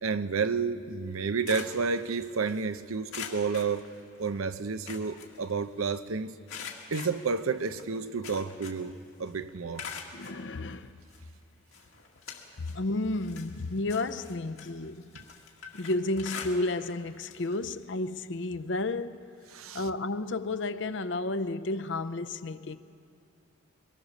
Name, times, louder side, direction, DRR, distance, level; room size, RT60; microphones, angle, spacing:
voice 1, 0.0-3.9 4.2-6.3 6.9-9.9 19.5-19.8, right 5 dB, 85° right, 0.7 m, -31 dB
sound 1, 1.1-2.6 3.1-4.4 4.7-6.0 6.5-9.0 9.3-10.4 11.1-11.2 11.7-12.8 13.1-17.0 17.2-17.5 17.8-17.9 19.1-19.2, left 6 dB, 85° left, 2.0 m, -44 dB
voice 2, 10.1-10.9 12.6-15.1 15.7-19.4 19.7-22.8, left 2 dB, 60° left, 0.6 m, -32 dB
23.0 x 18.5 x 6.5 m
head